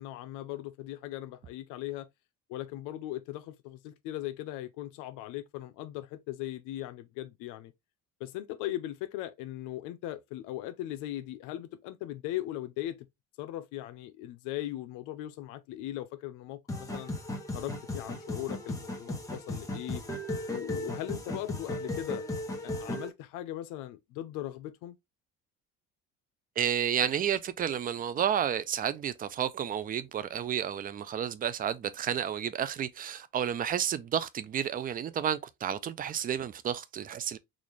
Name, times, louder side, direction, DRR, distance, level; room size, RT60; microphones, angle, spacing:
voice 1, 0.0-2.1 2.5-7.7 8.2-13.0 13.4-17.1 17.5-20.0 20.5-22.2 22.6-25.0, left 14 dB, 90° left, 0.6 m, -39 dB
sound 1, 16.7-23.1, left 1 dB, 10° left, 0.9 m, -36 dB
voice 2, 26.6-37.4, right 9 dB, 30° right, 0.4 m, -31 dB
4.1 x 2.5 x 3.1 m
cardioid pair, 135°, 30 cm